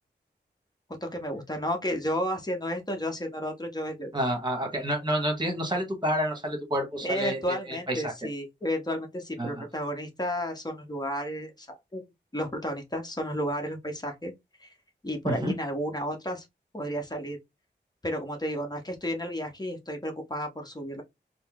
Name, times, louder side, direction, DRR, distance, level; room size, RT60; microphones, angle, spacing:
voice 1, 1.0-4.1 7.0-14.3 14.6-14.7 15.0-16.5 16.7-17.4 18.0-21.0, equal, 20° left, 1.0 m, -32 dB
voice 2, 4.1-8.1 9.4-9.6 15.2-15.5, equal, 25° right, 1.4 m, -29 dB
4.1 x 2.1 x 3.6 m
wide cardioid pair, 85°, 19 cm